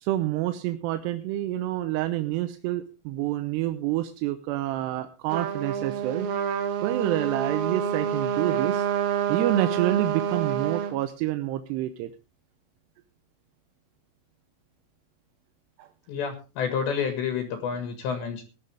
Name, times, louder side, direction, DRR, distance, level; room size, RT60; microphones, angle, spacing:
voice 1, 0.0-6.3 6.8-12.1 15.8-15.9, right 14 dB, 75° right, 9 dB, 2.7 m, -28 dB
Trumpet, 5.3-10.9, right 8 dB, 60° right, 3.3 m, -28 dB
voice 2, 16.1-18.4, left 6 dB, 70° left, 7 dB, 3.9 m, -29 dB
18.5 x 11.0 x 3.4 m, 0.31 s
omnidirectional pair, 5.4 m